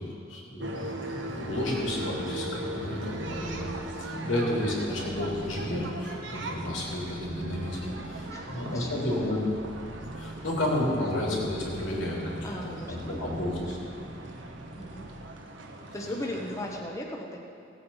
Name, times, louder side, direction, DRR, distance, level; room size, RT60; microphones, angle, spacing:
voice 1, 0.0-3.7 4.0-9.4 10.1-13.8, left 1 dB, 90° left, -3 dB, 3.1 m, -32 dB
sound 1, 0.6-16.8, right 1 dB, 80° right, 1.1 m, -40 dB
sound 2, 0.7-15.4, right 2 dB, 35° right, 0.8 m, -44 dB
voice 2, 8.3-9.4 12.4-14.1 14.8-15.1 15.9-17.4, left 1 dB, 15° left, -1 dB, 1.0 m, -38 dB
16.5 x 8.6 x 5.6 m, 2.4 s
head